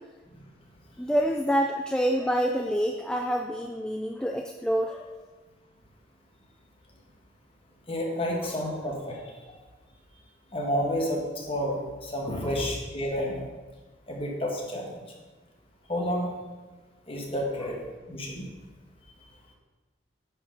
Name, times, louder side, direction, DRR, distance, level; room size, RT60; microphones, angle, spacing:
voice 1, 1.0-5.2 8.5-8.8 12.4-12.6 17.6-17.7, equal, 5° left, 2 dB, 0.3 m, -27 dB
voice 2, 7.9-9.2 10.5-11.8 12.0-13.5 14.1-14.9 15.9-16.3 17.1-17.8 18.1-18.4, equal, 30° left, 0 dB, 1.5 m, -30 dB
9.6 x 5.4 x 5.5 m, 1.3 s
head